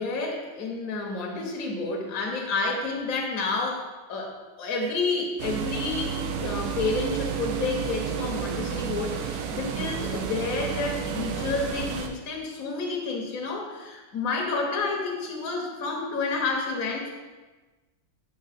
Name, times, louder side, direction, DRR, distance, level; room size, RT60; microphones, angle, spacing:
voice 1, 0.0-17.1, left 3 dB, 60° left, 0 dB, 1.0 m, -30 dB
sound 1, 5.4-12.1, right 7 dB, 85° right, 1.5 m, -31 dB
6.4 x 3.0 x 4.9 m, 1.2 s
omnidirectional pair, 2.3 m